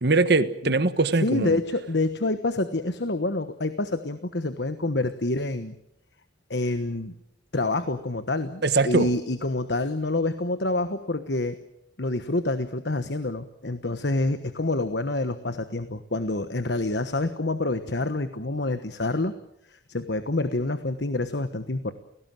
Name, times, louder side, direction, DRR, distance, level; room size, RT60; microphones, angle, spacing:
voice 1, 0.0-1.6 8.6-9.1, right 3 dB, 60° right, 12 dB, 1.4 m, -22 dB
voice 2, 1.2-5.7 6.5-7.1 7.5-11.6 12.0-19.3 19.7-21.9, left 2 dB, 60° left, 10 dB, 1.3 m, -27 dB
29.5 x 18.5 x 7.7 m, 0.79 s
head